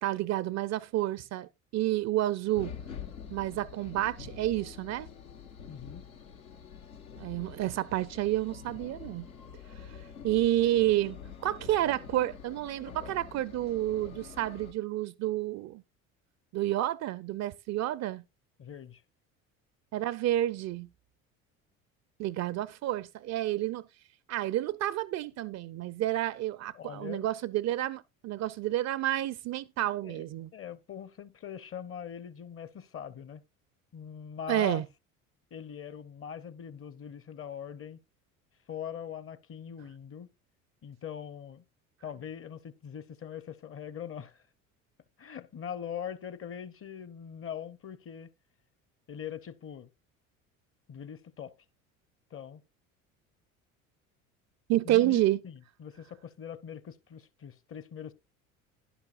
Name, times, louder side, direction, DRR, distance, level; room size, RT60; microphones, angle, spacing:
voice 1, 0.0-2.7 3.3-5.1 7.2-9.3 10.2-15.8 16.5-18.2 19.9-20.9 22.2-23.8 24.3-30.5 34.5-34.8 54.7-55.4, right 14 dB, 40° right, 0.5 m, -30 dB
sound 1, 2.5-14.7, left 6 dB, 85° left, 1.4 m, -46 dB
voice 2, 5.7-6.1 18.6-19.0 26.7-27.3 30.0-30.2 30.5-33.4 33.9-34.8 35.5-38.0 38.7-40.3 40.8-41.6 42.0-44.4 45.2-48.3 49.1-49.9 50.9-51.5 52.3-52.6 54.8-58.1, left 8 dB, 30° left, 0.8 m, -42 dB
11.0 x 10.5 x 2.5 m
hypercardioid pair, 65°, 41 cm